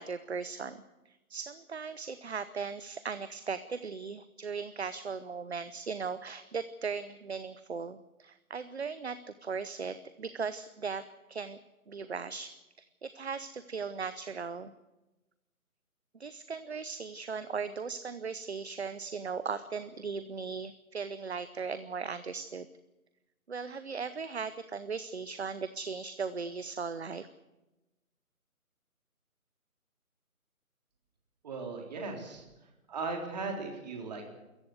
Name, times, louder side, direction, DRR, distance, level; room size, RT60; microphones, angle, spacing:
voice 1, 0.0-11.6 11.9-14.7 16.2-22.7 23.5-27.3, right 5 dB, 45° right, 15 dB, 0.9 m, -38 dB
voice 2, 31.4-34.3, right 4 dB, 30° right, 3 dB, 3.7 m, -38 dB
25.0 x 14.5 x 8.1 m, 1.0 s
figure-of-eight pair, 150°, 43 cm